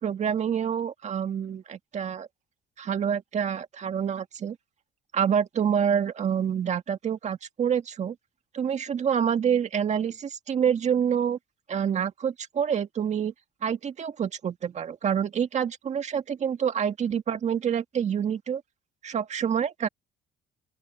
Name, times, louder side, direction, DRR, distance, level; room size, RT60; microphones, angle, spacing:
voice 1, 0.0-2.3 2.8-4.6 5.1-8.2 8.5-11.4 11.7-13.3 13.6-18.6 19.0-19.9, right 8 dB, 45° right, 1.9 m, -27 dB
open air
cardioid pair, 110°, 17 cm